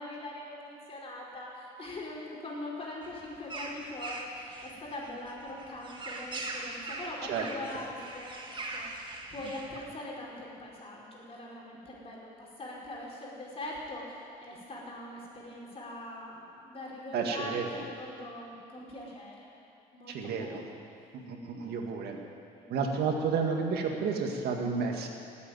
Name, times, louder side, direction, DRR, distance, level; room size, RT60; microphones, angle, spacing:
voice 1, 0.0-14.0 14.4-19.7 19.9-20.8 21.5-21.9 22.5-22.7, left 1 dB, 35° left, -3 dB, 4.9 m, -42 dB
sound 1, 3.0-9.8, right 2 dB, 30° right, 2.0 m, -41 dB
voice 2, 17.1-17.8 20.1-20.7 21.1-22.2 22.7-25.1, right 5 dB, 75° right, 2 dB, 1.9 m, -31 dB
18.0 x 8.4 x 9.5 m, 2.5 s
cardioid pair, 110°, 17 cm